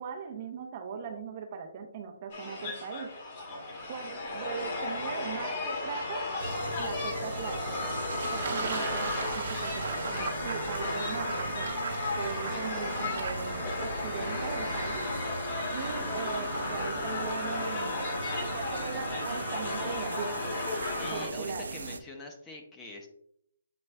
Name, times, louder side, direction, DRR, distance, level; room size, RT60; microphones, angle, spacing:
voice 1, 0.0-3.1 3.9-6.3 6.8-7.9 8.3-11.7 12.2-15.1 15.7-18.1 18.4-20.4 21.1-21.7, right 6 dB, 35° right, 5 dB, 0.6 m, -39 dB
sound 1, 2.3-21.3, left 2 dB, 35° left, 1.1 m, -34 dB
sound 2, 6.4-22.0, right 3 dB, 80° right, 0.5 m, -39 dB
Fowl / Bird / Water, 7.2-13.8, right 5 dB, 55° right, 1.0 m, -39 dB
voice 2, 21.0-23.1, left 2 dB, 10° left, 2 dB, 0.6 m, -44 dB
7.7 x 3.0 x 2.2 m, 0.73 s
hypercardioid pair, 160°, 0 cm